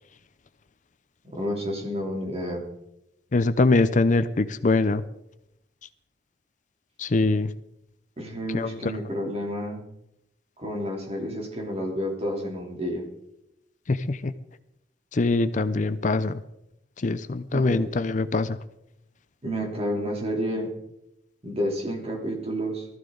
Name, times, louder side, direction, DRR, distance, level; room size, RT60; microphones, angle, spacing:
voice 1, 1.2-2.6 8.2-9.8 10.6-13.0 17.5-17.9 19.4-20.7 21.4-22.9, equal, 35° right, 1 dB, 3.2 m, -30 dB
voice 2, 3.3-5.0 7.0-7.5 8.5-8.9 13.9-14.3 15.1-16.4 17.0-18.6, left 3 dB, 45° left, 13 dB, 0.6 m, -23 dB
19.0 x 14.0 x 3.9 m, 0.82 s
head